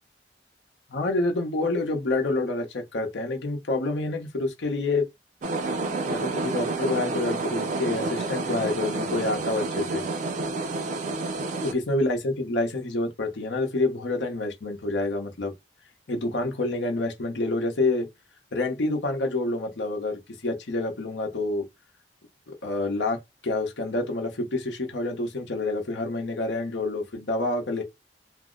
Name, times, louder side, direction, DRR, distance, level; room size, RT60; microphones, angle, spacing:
voice 1, 0.9-5.0 6.1-10.0 11.6-15.5 16.1-18.1 18.5-21.7 22.5-27.8, left 2 dB, 90° left, 0.8 m, -28 dB
sound 1, 5.4-11.7, right 3 dB, 45° right, 0.4 m, -29 dB
2.5 x 2.0 x 3.7 m
head